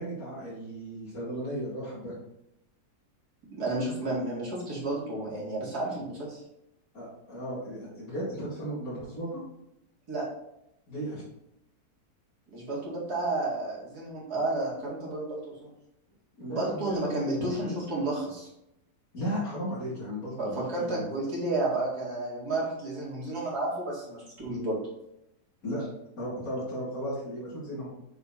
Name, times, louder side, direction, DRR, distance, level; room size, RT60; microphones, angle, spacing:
voice 1, 0.0-2.1 6.9-9.4 10.9-11.2 16.4-17.1 17.4-17.5 19.1-21.1 25.6-25.8 26.2-27.9, equal, 55° left, -10 dB, 2.8 m, -35 dB
voice 2, 3.5-6.4 10.1-10.3 12.5-15.7 16.5-18.5 20.4-24.8, right 2 dB, 65° right, -6 dB, 2.8 m, -31 dB
6.8 x 4.2 x 4.2 m, 0.83 s
omnidirectional pair, 1.7 m